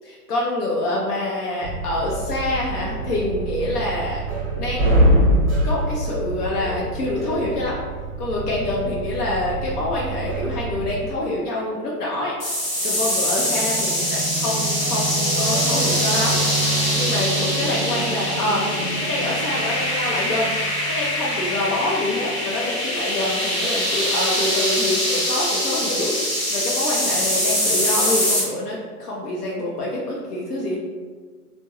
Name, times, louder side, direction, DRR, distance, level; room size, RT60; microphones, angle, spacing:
voice 1, 0.0-4.3 4.5-5.2 5.6-7.8 8.2-12.3 12.8-20.5 20.9-26.1 26.5-30.8, left 1 dB, 75° left, -3 dB, 0.7 m, -26 dB
sound 1, 1.6-10.9, right 1 dB, 20° right, 0.7 m, -24 dB
sound 2, 12.4-28.4, equal, 45° left, 1.2 m, -23 dB
Singing / Musical instrument, 12.8-22.0, right 3 dB, 15° left, 0.8 m, -30 dB
2.2 x 2.1 x 3.0 m, 1.5 s
hypercardioid pair, 175°, 46 cm